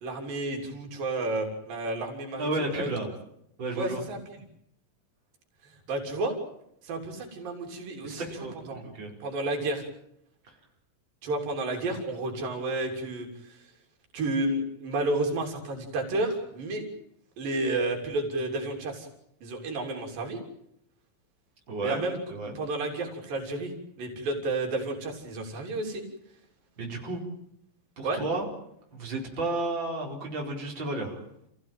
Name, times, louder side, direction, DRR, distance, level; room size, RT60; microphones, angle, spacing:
voice 1, 0.0-2.9 3.8-4.2 5.9-6.4 6.8-8.2 8.7-8.8 9.2-9.8 11.2-13.6 14.1-16.9 17.4-19.1 19.4-20.4 21.8-22.2 22.6-26.0 28.0-28.2, right 2 dB, 90° right, 3 dB, 5.0 m, -31 dB
voice 2, 2.4-3.1 3.6-4.0 8.0-9.1 10.4-10.5 21.7-22.0 22.3-22.5 26.8-27.2 28.0-28.5 28.9-31.2, right 2 dB, 35° right, -1 dB, 5.2 m, -32 dB
28.0 x 16.0 x 9.0 m, 0.76 s
omnidirectional pair, 3.9 m